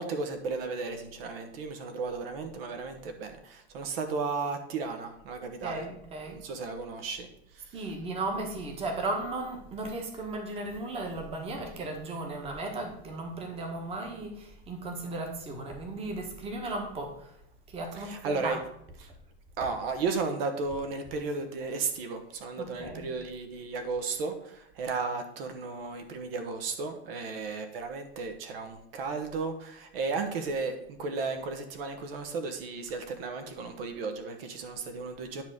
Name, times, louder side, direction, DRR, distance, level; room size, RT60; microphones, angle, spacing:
voice 1, 0.0-5.9 6.3-7.3 7.5-7.8 17.9-18.6 19.0-19.1 19.6-35.4, right 4 dB, 55° right, 7 dB, 1.3 m, -34 dB
voice 2, 5.6-6.4 7.7-17.3 17.7-18.6 22.6-23.1, right 2 dB, 15° right, 2 dB, 1.4 m, -35 dB
10.5 x 3.7 x 6.6 m, 0.74 s
supercardioid pair, 160°, 34 cm